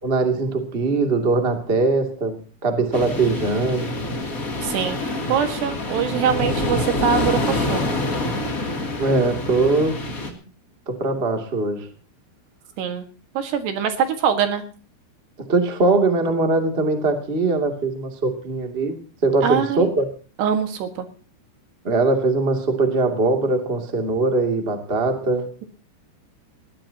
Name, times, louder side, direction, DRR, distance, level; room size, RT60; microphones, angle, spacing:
voice 1, 0.0-3.9 9.0-10.0 10.8-11.9 15.4-20.1 21.8-25.5, right 3 dB, 20° right, 4 dB, 1.7 m, -21 dB
sound 1, 2.9-10.3, left 1 dB, 25° left, 2.3 m, -26 dB
voice 2, 4.6-7.8 12.8-13.1 13.4-14.6 19.4-19.9 20.4-21.1, right 7 dB, 70° right, 7 dB, 3.6 m, -23 dB
20.0 x 17.5 x 2.9 m, 0.38 s
omnidirectional pair, 5.3 m